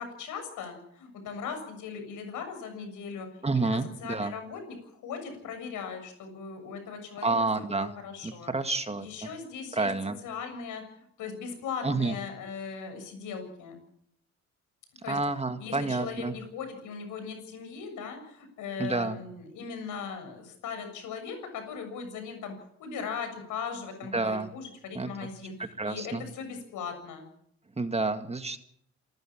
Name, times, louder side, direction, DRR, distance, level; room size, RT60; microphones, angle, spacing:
voice 1, 0.0-4.8 5.0-8.5 9.0-9.9 10.2-13.8 15.0-15.2 15.6-22.5 22.8-27.3, left 6 dB, 85° left, 6 dB, 7.0 m, -39 dB
voice 2, 3.4-4.3 7.2-7.9 8.2-9.3 9.7-10.2 11.8-12.2 15.1-16.3 18.8-19.2 24.1-24.5 24.9-25.3 25.8-26.2 27.8-28.6, right 3 dB, 20° right, 9 dB, 1.9 m, -29 dB
28.5 x 14.5 x 7.3 m, 0.73 s
cardioid pair, 90°, 30 cm